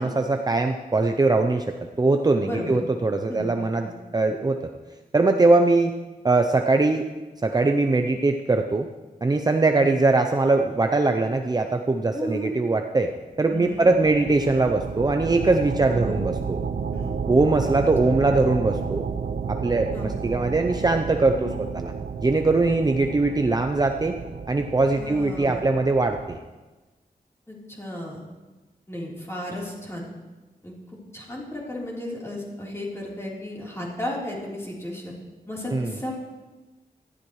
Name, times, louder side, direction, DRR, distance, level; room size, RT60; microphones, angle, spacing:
voice 1, 0.0-4.6 5.1-5.9 6.2-7.0 7.4-8.9 9.2-13.1 13.4-16.6 17.3-19.1 19.5-21.9 22.2-24.1 24.5-26.4 35.7-36.0, right 3 dB, 25° right, 4 dB, 0.6 m, -21 dB
voice 2, 2.4-2.8 3.3-3.5 3.8-3.9 12.1-12.5 13.5-13.9 15.9-16.2 16.9-17.2 18.1-18.3 19.9-20.1 21.4-21.6 24.9-25.6 27.5-28.2 28.9-30.1 30.6-30.7 31.1-35.1 35.5-36.1, left 1 dB, 15° left, -5 dB, 3.7 m, -34 dB
sound 1, 13.5-26.4, right 5 dB, 75° right, 0.7 m, -32 dB
18.5 x 13.5 x 3.2 m, 1.2 s
wide cardioid pair, 140°, 15 cm